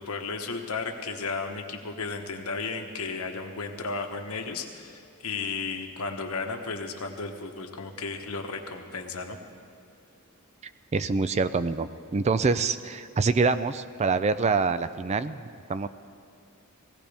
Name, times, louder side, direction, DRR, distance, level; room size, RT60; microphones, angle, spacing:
voice 1, 0.0-9.4, left 4 dB, 80° left, 4 dB, 1.2 m, -34 dB
voice 2, 10.9-15.4 15.7-15.9, right 4 dB, 30° right, 13 dB, 0.4 m, -25 dB
19.5 x 16.5 x 3.5 m, 2.5 s
head